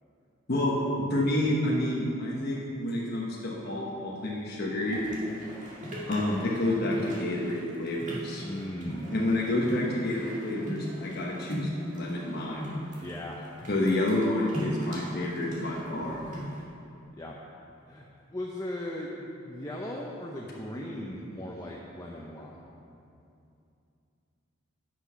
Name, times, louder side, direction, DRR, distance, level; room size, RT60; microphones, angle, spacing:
voice 1, 1.1-5.0 6.0-8.5 9.1-12.6 13.7-16.2, left 1 dB, 55° left, -4 dB, 1.1 m, -29 dB
sound 1, 4.9-16.6, equal, 40° right, 2.0 m, -39 dB
voice 2, 8.4-9.2 13.0-13.4 17.1-17.4 17.9-22.7, left 1 dB, 20° left, -3 dB, 0.6 m, -38 dB
9.0 x 6.0 x 5.6 m, 2.6 s
head